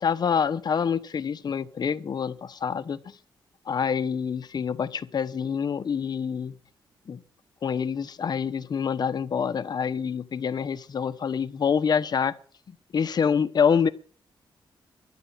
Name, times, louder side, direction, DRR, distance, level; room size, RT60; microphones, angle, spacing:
voice 1, 0.0-3.0 3.7-6.6 7.1-7.2 7.6-12.3 12.9-13.9, left 6 dB, 50° left, 1.2 m, -26 dB
12.5 x 9.7 x 9.0 m
cardioid pair, 90°, 9 cm